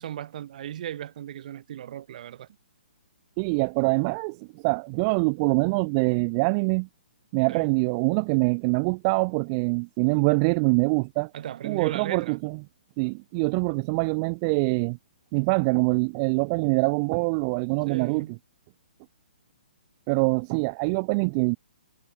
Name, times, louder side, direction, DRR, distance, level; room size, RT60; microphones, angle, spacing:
voice 1, 0.0-2.5 7.5-7.7 11.3-12.4 17.9-18.4, right 11 dB, 50° right, 1.7 m, -36 dB
voice 2, 3.4-6.9 7.3-11.3 11.6-12.6 13.0-15.0 15.3-18.3 20.1-21.6, right 32 dB, 30° right, 0.7 m, -24 dB
hypercardioid pair, 140°, 5 cm